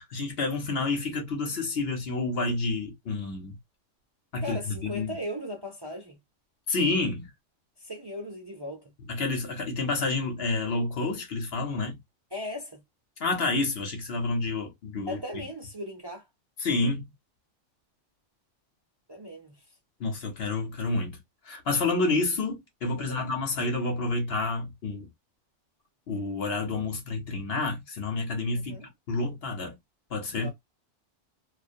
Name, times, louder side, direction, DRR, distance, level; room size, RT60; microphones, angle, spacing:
voice 1, 0.0-3.6 4.3-5.1 6.7-7.3 9.1-12.0 13.2-15.2 16.6-17.0 20.0-21.2 21.5-25.1 26.1-28.8 29.1-29.7 30.1-30.5, left 3 dB, 60° left, 0.9 m, -29 dB
voice 2, 4.4-6.2 7.8-8.8 12.3-12.8 15.1-16.2 19.1-19.5 23.0-23.3 28.5-28.9 30.3-30.5, left 1 dB, 25° right, 0.6 m, -37 dB
2.4 x 2.1 x 2.5 m
omnidirectional pair, 1.3 m